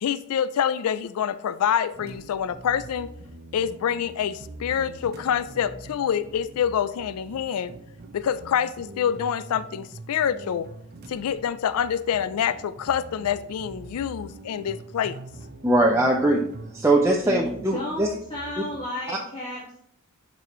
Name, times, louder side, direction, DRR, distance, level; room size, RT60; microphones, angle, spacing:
voice 1, 0.0-3.1 3.5-7.7 8.1-10.7 11.1-15.2, left 8 dB, 85° left, 14 dB, 0.3 m, -26 dB
sound 1, 1.9-18.8, right 2 dB, 45° right, 0.7 m, -44 dB
voice 2, 15.6-16.4 16.7-18.1, right 1 dB, 10° right, -1 dB, 0.5 m, -21 dB
voice 3, 17.2-19.8, left 1 dB, 25° left, -7 dB, 1.6 m, -33 dB
11.0 x 4.1 x 3.0 m, 0.71 s
head